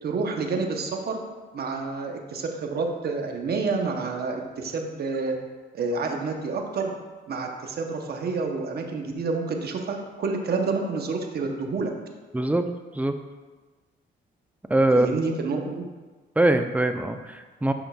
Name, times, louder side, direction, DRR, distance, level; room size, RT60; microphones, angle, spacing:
voice 1, 0.0-1.2 1.5-5.3 5.7-6.9 7.3-11.9 14.9-15.8, right 4 dB, 55° right, 3 dB, 0.9 m, -28 dB
voice 2, 12.3-12.7 13.0-13.1 14.7-15.2 16.4-17.7, right 1 dB, 5° right, 7 dB, 0.4 m, -22 dB
7.9 x 5.8 x 2.3 m, 1.3 s
cardioid pair, 90°, 20 cm